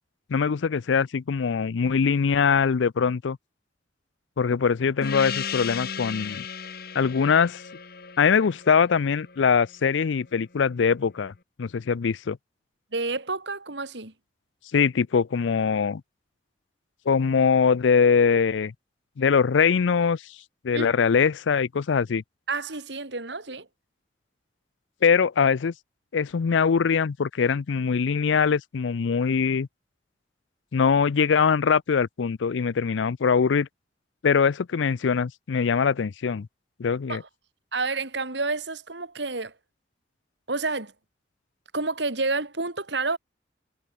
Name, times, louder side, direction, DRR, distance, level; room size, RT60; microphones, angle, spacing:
voice 1, 0.3-3.4 4.4-6.5 6.9-7.6 8.2-11.3 11.6-12.4 14.7-16.0 17.1-18.7 19.2-20.2 20.6-22.2 25.0-25.7 26.1-29.7 30.7-33.7 34.2-36.5 36.8-37.2, left 6 dB, 85° left, 0.5 m, -22 dB
Gong, 5.0-10.0, left 7 dB, 55° left, 1.7 m, -35 dB
voice 2, 12.9-14.1 20.7-20.9 22.5-23.7 37.1-37.2 37.7-39.5 40.5-40.9 41.7-43.2, right 3 dB, 70° right, 2.7 m, -29 dB
head